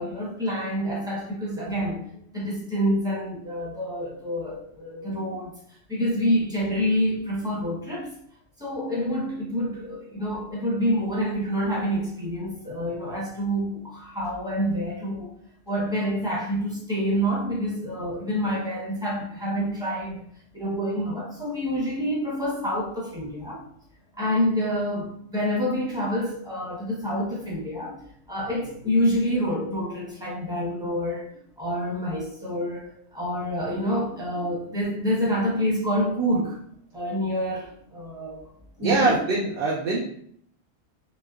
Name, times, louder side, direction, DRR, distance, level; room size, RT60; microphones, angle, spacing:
voice 1, 0.0-2.0 2.3-5.5 5.9-8.1 8.6-15.3 15.7-20.2 20.5-23.6 24.1-28.0 28.3-31.3 31.6-36.6 36.9-38.5 38.8-39.2, equal, 5° right, -5 dB, 0.7 m, -27 dB
voice 2, 38.8-40.0, right 3 dB, 65° right, -4 dB, 0.8 m, -23 dB
3.1 x 2.9 x 2.3 m, 0.65 s
omnidirectional pair, 1.3 m